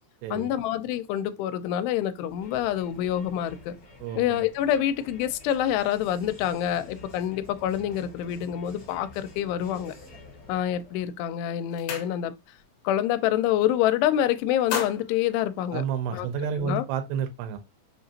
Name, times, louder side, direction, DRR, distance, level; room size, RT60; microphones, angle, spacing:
voice 1, 0.3-3.7 4.2-9.9 10.5-12.3 12.8-15.8 16.1-16.3 16.6-16.9, left 11 dB, 85° left, 2.6 m, -26 dB
Crowd, 2.3-11.1, left 3 dB, 40° left, 1.9 m, -49 dB
voice 2, 4.0-4.5 15.7-17.6, right 7 dB, 80° right, 2.7 m, -30 dB
sound 1, 10.9-11.1 11.4-12.6 12.9-13.2 13.5-14.1 14.4-16.3, left 6 dB, 70° left, 2.2 m, -36 dB
6.2 x 2.8 x 2.8 m
omnidirectional pair, 4.8 m